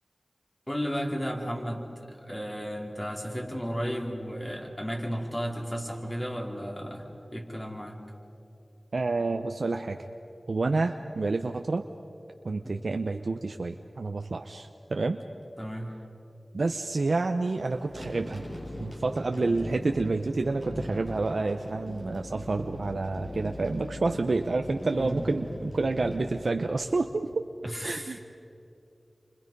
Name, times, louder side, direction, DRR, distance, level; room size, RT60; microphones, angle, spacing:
voice 1, 0.7-1.8 2.1-8.0 12.6-12.7 15.6-15.9 24.9-25.3 27.6-28.2, equal, 20° left, 0 dB, 4.0 m, -34 dB
voice 2, 8.9-10.0 10.5-11.8 12.4-15.2 16.5-18.4 18.8-27.3 27.8-28.2, right 3 dB, 75° right, 5 dB, 0.8 m, -29 dB
sound 1, 17.7-27.2, left 1 dB, 50° left, 7.6 m, -40 dB
29.5 x 25.0 x 5.4 m, 2.7 s
wide cardioid pair, 50°, 0 cm